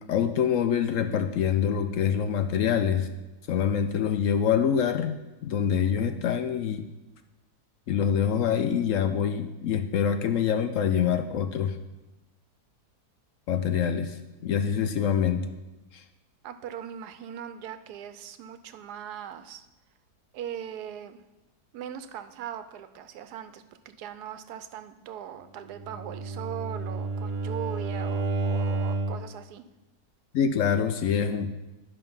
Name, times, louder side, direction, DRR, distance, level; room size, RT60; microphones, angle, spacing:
voice 1, 0.1-3.1 3.5-6.9 7.9-11.8 13.5-15.5 15.9-16.0 30.3-31.5, left 8 dB, 70° left, 8 dB, 0.8 m, -25 dB
voice 2, 16.4-19.7 20.3-21.2 21.7-29.6, right 9 dB, 85° right, 11 dB, 1.2 m, -40 dB
Bowed string instrument, 25.7-29.4, right 3 dB, 55° right, 0.9 m, -30 dB
10.5 x 5.6 x 5.4 m, 1.0 s
omnidirectional pair, 1.6 m